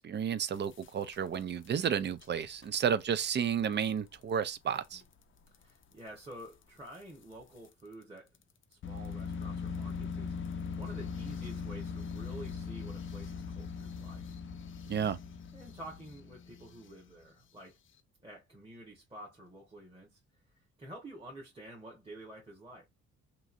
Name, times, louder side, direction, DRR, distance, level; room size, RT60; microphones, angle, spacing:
voice 1, 0.0-5.0 14.9-15.2, right 8 dB, 40° right, 0.4 m, -32 dB
sound 1, 0.5-1.7 2.0-2.2 2.6-2.8 3.1-3.2 3.4-3.5 4.1-4.2 5.0-5.1 5.5-5.6 6.9-7.0 7.6-7.7 8.8-17.1, left 5 dB, 40° left, 0.5 m, -40 dB
voice 2, 5.6-8.3 8.7-14.2 15.5-17.8 18.2-22.9, right 1 dB, 20° right, 1.1 m, -50 dB
3.0 x 2.4 x 2.5 m
cardioid pair, 90°, 30 cm